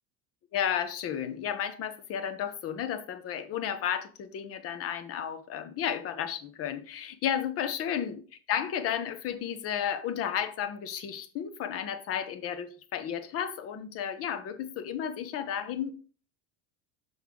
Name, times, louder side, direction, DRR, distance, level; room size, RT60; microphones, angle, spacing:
voice 1, 0.5-8.2 8.5-16.0, left 9 dB, 35° left, 0.8 m, -33 dB
6.2 x 5.6 x 3.6 m
cardioid pair, 150°, 42 cm